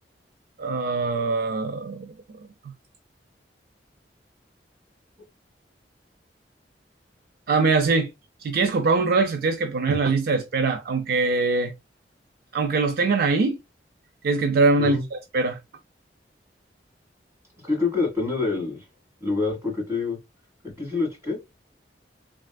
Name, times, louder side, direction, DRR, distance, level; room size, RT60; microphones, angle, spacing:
voice 1, 0.6-2.1 7.5-8.1 8.4-11.7 12.5-13.6 14.2-15.6, right 3 dB, 60° right, 0.4 m, -22 dB
voice 2, 17.7-18.8 19.2-20.2 20.8-21.4, left 3 dB, 15° right, 1.9 m, -26 dB
3.3 x 2.4 x 2.2 m
head